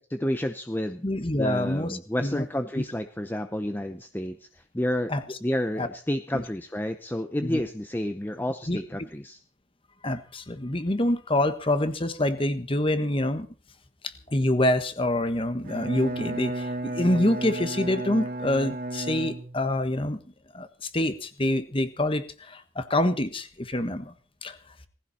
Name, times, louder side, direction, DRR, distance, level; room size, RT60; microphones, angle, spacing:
voice 1, 0.1-1.0 1.3-5.1 5.4-9.4, left 1 dB, 10° left, 8 dB, 0.7 m, -30 dB
voice 2, 1.0-2.5 2.8-2.9 5.1-5.4 5.8-5.9 6.3-6.4 7.4-7.6 8.7-8.8 10.0-13.5 14.0-20.2 20.5-24.1 24.4-24.6, left 1 dB, 25° left, 10 dB, 1.4 m, -26 dB
Bowed string instrument, 15.6-19.9, right 1 dB, 45° right, 2.2 m, -34 dB
19.0 x 15.5 x 4.2 m, 0.38 s
head